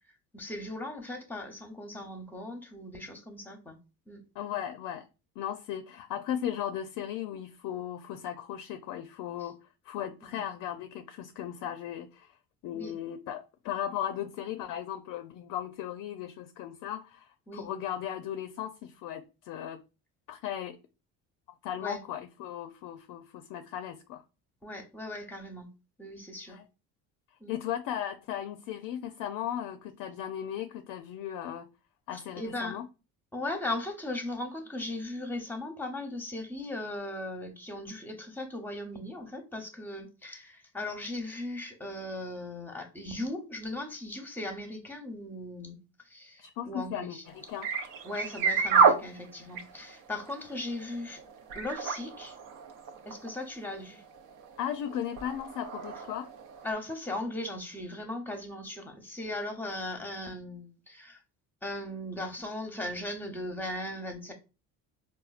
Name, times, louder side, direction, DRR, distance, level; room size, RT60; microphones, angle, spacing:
voice 1, 0.3-3.8 4.1-4.2 10.3-10.4 12.7-12.9 17.5-17.7 21.8-22.0 24.6-25.7 26.0-26.6 27.4-27.6 32.1-32.8 33.3-47.2 48.0-51.2 51.5-52.3 53.1-54.0 56.6-61.2 61.6-64.3, left 1 dB, 5° left, 0.8 m, -38 dB
voice 2, 4.4-5.1 5.4-9.6 9.8-12.4 12.6-19.8 20.3-20.8 21.6-24.2 26.5-26.7 27.5-31.7 32.1-32.9 46.4-47.7 54.6-56.3, left 10 dB, 70° left, 0.5 m, -36 dB
sound 1, 47.3-56.7, right 6 dB, 65° right, 0.7 m, -30 dB
4.3 x 2.2 x 2.4 m
cardioid pair, 100°, 34 cm